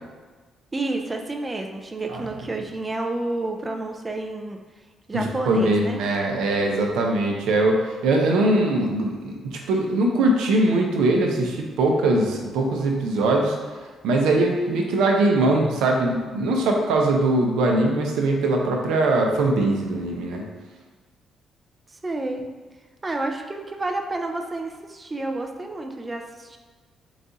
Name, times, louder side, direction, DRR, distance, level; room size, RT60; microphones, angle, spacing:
voice 1, 0.7-4.6 5.1-6.0 21.9-22.5 23.0-26.6, right 2 dB, 25° right, 3 dB, 0.4 m, -30 dB
voice 2, 5.1-13.6 14.0-20.4, right 2 dB, 90° right, 1 dB, 0.6 m, -21 dB
4.0 x 2.4 x 3.9 m, 1.4 s
cardioid pair, 90°, 0 cm